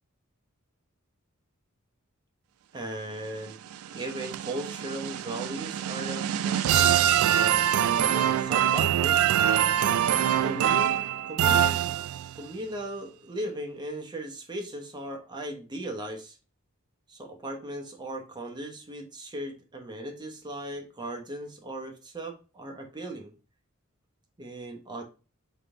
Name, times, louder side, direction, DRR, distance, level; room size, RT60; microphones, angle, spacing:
voice 1, 2.7-3.5 3.9-7.0 7.8-9.3 10.4-11.8 12.3-16.4 17.1-23.3 24.4-25.0, right 1 dB, 20° right, 3 dB, 0.8 m, -37 dB
sound 1, 3.5-12.4, right 10 dB, 85° right, 0.3 m, -24 dB
3.7 x 3.4 x 3.6 m, 0.34 s
head